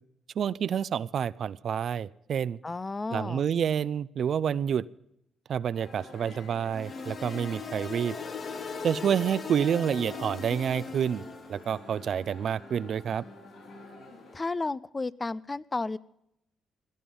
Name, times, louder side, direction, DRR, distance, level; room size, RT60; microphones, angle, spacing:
voice 1, 0.4-2.6 3.1-4.9 5.5-8.2 8.8-11.2 11.5-13.2, right 8 dB, 60° right, 17 dB, 0.5 m, -28 dB
voice 2, 2.6-3.4 14.3-16.0, left 3 dB, 25° left, 18 dB, 0.5 m, -32 dB
sound 1, 5.7-14.4, left 2 dB, 75° left, 7.7 m, -46 dB
sound 2, 6.7-11.5, left 5 dB, 50° left, 1.2 m, -39 dB
17.0 x 12.5 x 5.5 m, 0.78 s
cardioid pair, 75°, 0 cm